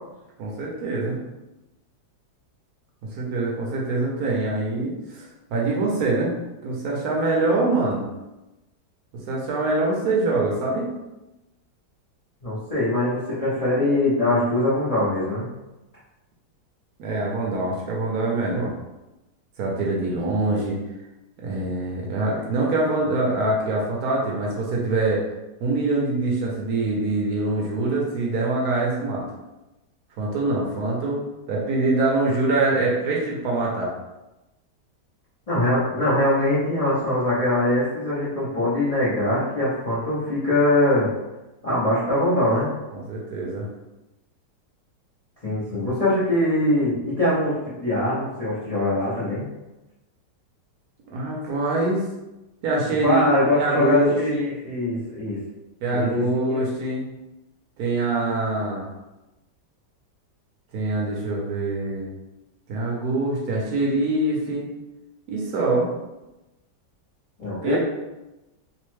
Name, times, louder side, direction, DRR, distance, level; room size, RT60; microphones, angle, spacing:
voice 1, 0.4-1.2 3.2-5.2 5.5-6.3 6.6-8.1 9.3-10.9 17.0-18.7 19.6-20.8 21.4-25.2 25.6-29.3 30.2-33.9 42.9-43.7 51.1-52.0 52.6-54.5 55.8-57.0 57.8-58.9 60.7-62.1 62.7-64.7 65.3-65.9 67.6-67.8, right 2 dB, 70° right, -3 dB, 1.0 m, -24 dB
voice 2, 12.4-15.5 35.5-41.1 41.6-42.7 45.4-49.5 53.0-55.4 55.9-56.6 67.4-67.8, left 1 dB, 45° left, -10 dB, 0.4 m, -22 dB
3.0 x 2.1 x 3.1 m, 1.0 s
omnidirectional pair, 1.8 m